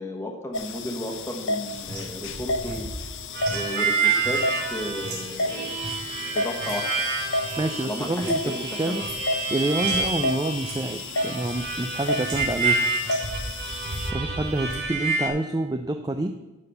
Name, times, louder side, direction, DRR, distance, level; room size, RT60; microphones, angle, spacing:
voice 1, 0.0-2.9 3.5-4.4 4.7-5.8 6.1-6.9 7.8-9.0, equal, 10° left, 2 dB, 1.2 m, -34 dB
sound 1, 0.5-14.1, left 2 dB, 55° left, 0.7 m, -32 dB
sound 2, 1.7-8.5 8.8-10.1 10.6-10.8 11.1-11.7 12.2-12.7 13.0-14.9, right 1 dB, 85° right, 3.8 m, -38 dB
Harmonica, 3.3-15.3, right 4 dB, 50° right, 2.1 m, -28 dB
voice 2, 7.6-8.5 8.8-9.0 9.5-12.8 14.1-16.3, right 2 dB, 15° right, 6 dB, 0.4 m, -27 dB
12.5 x 4.2 x 6.6 m, 1.1 s
head